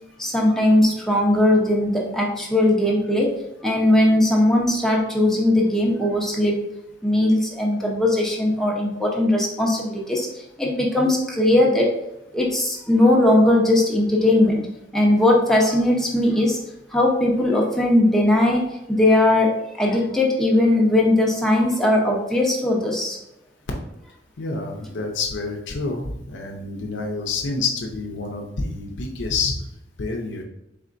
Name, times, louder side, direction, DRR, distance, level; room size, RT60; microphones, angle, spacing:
voice 1, 0.2-3.3 3.6-6.6 7.0-11.9 12.3-14.6 14.9-16.6 16.9-23.2, left 1 dB, ahead, -3 dB, 0.7 m, -19 dB
voice 2, 24.4-29.5 30.0-30.4, left 3 dB, 80° left, 1 dB, 0.6 m, -28 dB
4.2 x 3.6 x 2.5 m, 0.87 s
head